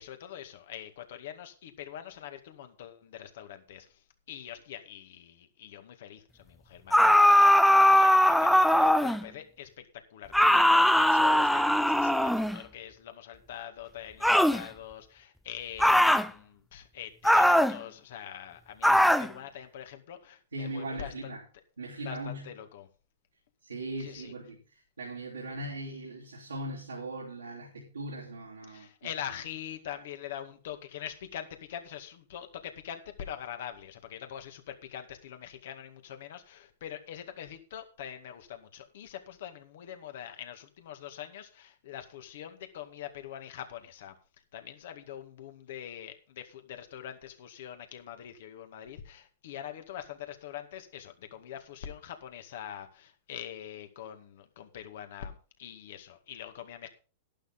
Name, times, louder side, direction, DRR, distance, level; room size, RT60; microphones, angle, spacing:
voice 1, 0.0-21.3 22.0-22.9 24.0-24.3 28.7-44.1 44.5-56.9, left 10 dB, 60° left, 2.1 m, -44 dB
sound 1, 6.9-9.2 10.3-12.6 14.2-14.6 15.8-16.3 17.2-17.8 18.8-19.3, left 1 dB, ahead, 0.7 m, -20 dB
voice 2, 20.5-21.4 21.8-22.6 23.6-28.9, right 1 dB, 80° right, 3.1 m, -39 dB
11.5 x 11.5 x 3.9 m
figure-of-eight pair, 100°, 0 cm